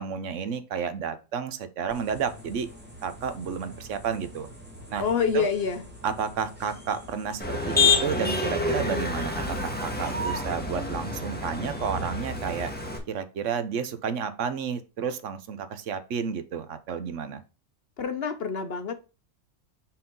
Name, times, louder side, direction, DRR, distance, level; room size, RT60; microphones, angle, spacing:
voice 1, 0.0-2.7 3.0-4.5 4.9-5.1 5.3-5.5 6.0-12.7 13.1-17.4, right 7 dB, 70° right, 11 dB, 1.0 m, -31 dB
sound 1, 1.9-13.0, right 1 dB, 10° right, 1.5 m, -46 dB
voice 2, 5.0-5.8 18.0-18.9, left 6 dB, 55° left, 9 dB, 0.8 m, -27 dB
Motor vehicle (road), 7.4-13.0, left 3 dB, 10° left, 1.1 m, -27 dB
5.6 x 4.5 x 3.7 m, 0.32 s
omnidirectional pair, 1.4 m